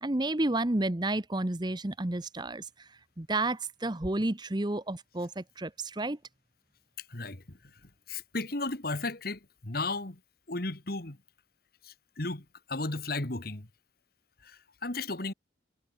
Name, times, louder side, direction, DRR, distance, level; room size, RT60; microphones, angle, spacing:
voice 1, 0.0-2.9 3.2-6.2, right 2 dB, 20° right, 0.9 m, -31 dB
voice 2, 7.0-10.2 10.5-11.2 11.8-13.7 14.4-15.3, left 2 dB, 50° left, 2.0 m, -35 dB
head